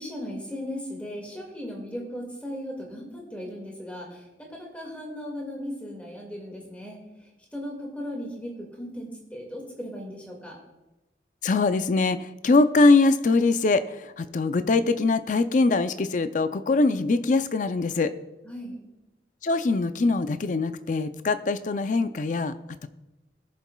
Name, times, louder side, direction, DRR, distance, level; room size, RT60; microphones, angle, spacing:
voice 1, 0.0-7.0 7.5-10.6 18.4-18.8, equal, 10° left, -1 dB, 1.9 m, -37 dB
voice 2, 11.4-18.1 19.4-22.5 22.8-22.9, left 3 dB, 45° left, 11 dB, 0.4 m, -22 dB
21.0 x 7.1 x 2.3 m, 1.0 s
head